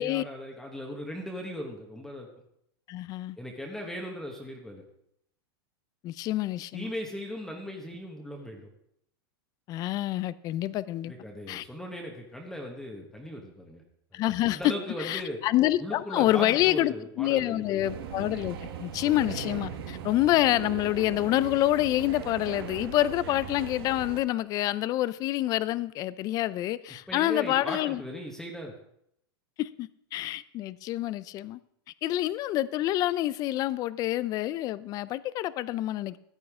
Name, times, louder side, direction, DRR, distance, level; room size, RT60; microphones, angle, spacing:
voice 1, 0.0-2.3 3.4-4.8 6.7-8.7 11.0-13.8 14.1-15.4 15.8-17.9 27.1-28.7, equal, 5° left, 1.2 m, -38 dB
voice 2, 2.9-3.4 6.0-6.9 9.7-11.1 11.5-11.6 14.1-14.7 15.0-28.0 29.6-31.6 32.0-36.2, left 15 dB, 30° left, 0.4 m, -27 dB
sound 1, 17.8-24.2, right 8 dB, 70° right, 1.2 m, -39 dB
14.0 x 9.4 x 3.6 m
supercardioid pair, 145°, 13 cm